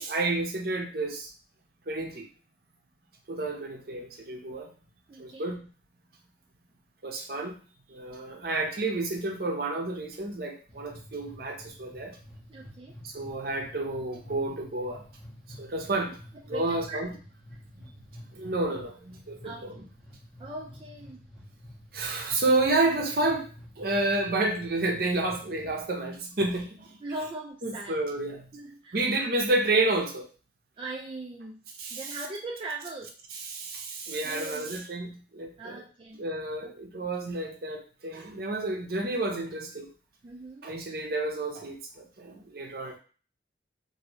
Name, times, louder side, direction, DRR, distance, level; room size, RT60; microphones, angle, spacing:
voice 1, 0.0-1.3 1.9-2.3 3.3-4.7 5.2-5.7 7.0-7.6 7.9-12.2 13.0-15.0 15.6-16.2 16.5-17.1 17.8-17.9 18.3-19.7 21.9-23.5 23.8-27.0 27.6-28.5 28.9-30.3 31.8-32.0 33.4-35.8 36.1-39.9 40.6-43.0, right 2 dB, 55° right, 2 dB, 0.7 m, -30 dB
voice 2, 5.1-5.5 12.5-13.0 16.3-17.0 19.4-19.9 20.4-21.2 27.0-27.9 28.5-29.0 30.8-31.6 31.9-33.1 34.2-34.8 35.6-36.2 36.6-37.1 40.2-40.7, right 2 dB, 25° right, -2 dB, 0.3 m, -40 dB
sound 1, 10.7-25.8, equal, 5° left, 1.1 m, -49 dB
2.9 x 2.6 x 3.0 m, 0.38 s
head